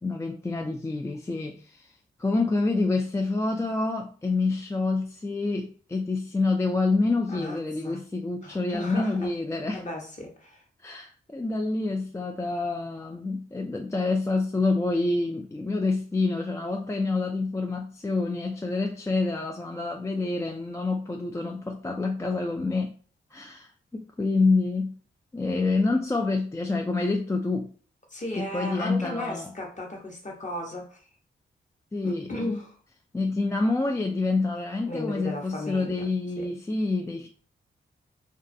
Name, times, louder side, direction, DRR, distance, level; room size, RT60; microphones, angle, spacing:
voice 1, 0.0-1.9 2.2-9.8 10.8-22.9 23.3-24.9 25.3-27.7 28.3-29.5 31.9-32.5 33.1-37.3, left 3 dB, 15° left, 0.3 m, -27 dB
voice 2, 7.3-7.6 7.8-8.0 8.4-9.3 9.7-10.6 28.1-31.0 32.0-32.8 34.9-36.1 36.4-36.5, left 1 dB, 35° left, 1.0 m, -35 dB
2.4 x 2.3 x 2.6 m
supercardioid pair, 45°, 21 cm